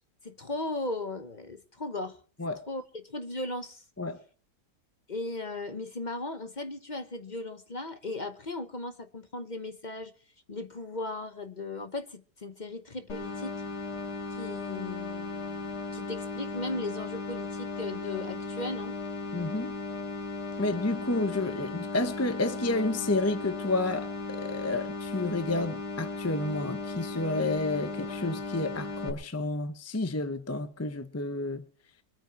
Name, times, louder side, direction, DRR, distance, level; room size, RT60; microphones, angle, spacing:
voice 1, 0.2-2.2 2.7-3.8 5.1-10.1 10.5-13.5 14.3-19.0, left 2 dB, 35° left, 0.9 m, -37 dB
sound 1, 13.1-29.1, left 3 dB, 65° left, 2.8 m, -36 dB
voice 2, 19.3-19.7 20.6-31.6, left 2 dB, 15° left, 0.5 m, -30 dB
24.5 x 9.0 x 4.6 m
omnidirectional pair, 1.8 m